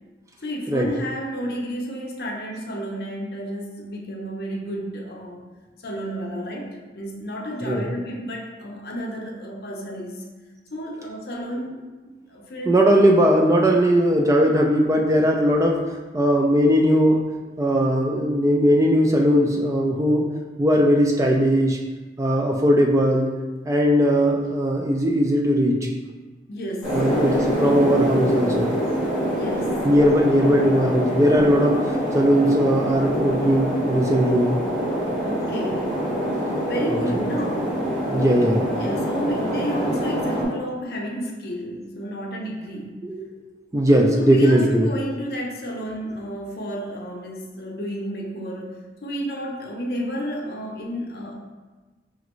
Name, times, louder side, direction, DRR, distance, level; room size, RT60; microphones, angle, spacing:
voice 1, 0.4-5.4 5.8-10.2 10.7-12.7 26.5-27.1 29.4-29.9 35.2-36.0 36.7-37.8 38.7-43.1 44.1-51.3, equal, 60° left, 0 dB, 0.6 m, -31 dB
voice 2, 12.7-15.8 16.1-17.2 17.6-20.3 20.6-21.8 22.2-23.3 23.7-25.9 26.9-28.7 29.8-31.8 32.1-34.5 36.9-37.0 38.1-38.7 43.0-43.3 43.7-44.9, equal, 15° right, 1 dB, 0.3 m, -19 dB
sound 1, 26.8-40.4, equal, ahead, 1.3 m, -25 dB
5.1 x 2.5 x 3.0 m, 1.2 s
head